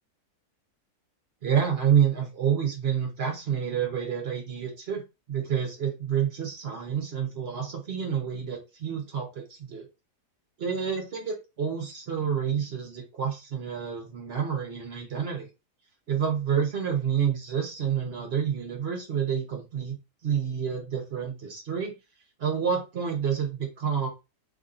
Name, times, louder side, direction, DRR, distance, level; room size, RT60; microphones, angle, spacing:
voice 1, 1.4-5.0 5.3-9.9 10.6-15.5 16.1-20.0 20.2-21.9 22.4-24.1, right 8 dB, 50° right, 1 dB, 0.9 m, -28 dB
3.6 x 2.6 x 2.5 m, 0.27 s
omnidirectional pair, 1.7 m